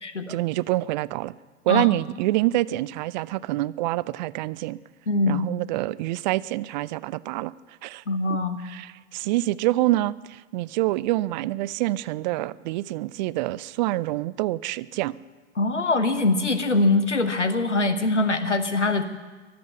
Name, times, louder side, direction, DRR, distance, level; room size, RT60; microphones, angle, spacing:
voice 1, 0.3-1.4 1.6-4.8 5.3-7.5 7.8-8.0 8.6-15.2, right 17 dB, 40° right, 20 dB, 0.4 m, -26 dB
voice 2, 5.1-5.4 8.1-8.6 15.6-19.0, left 2 dB, 90° left, 9 dB, 1.2 m, -23 dB
23.0 x 7.7 x 7.0 m, 1.3 s
figure-of-eight pair, 90°, 35 cm